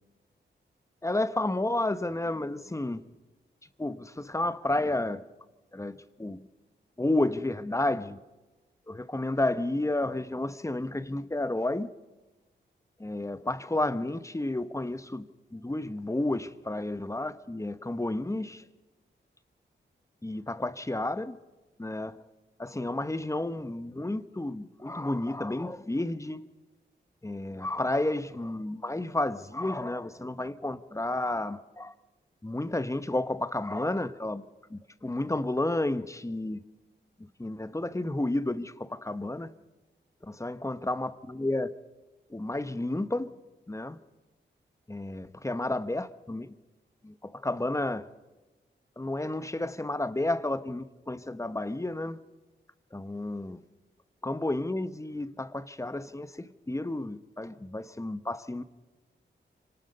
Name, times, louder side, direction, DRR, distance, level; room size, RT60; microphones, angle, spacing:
voice 1, 1.0-3.1 3.8-5.2 5.7-6.4 7.0-8.2 8.9-11.9 13.0-18.6 20.2-21.4 21.8-22.2 22.6-26.5 27.2-31.9 32.4-34.4 34.7-36.6 37.4-39.6 40.2-41.7 42.3-43.3 43.7-44.0 44.9-46.6 47.0-48.1 49.0-52.2 52.9-53.7 54.2-58.6, left 2 dB, 15° left, 1.0 m, -31 dB
25.5 x 19.0 x 5.4 m
cardioid pair, 70°, 20 cm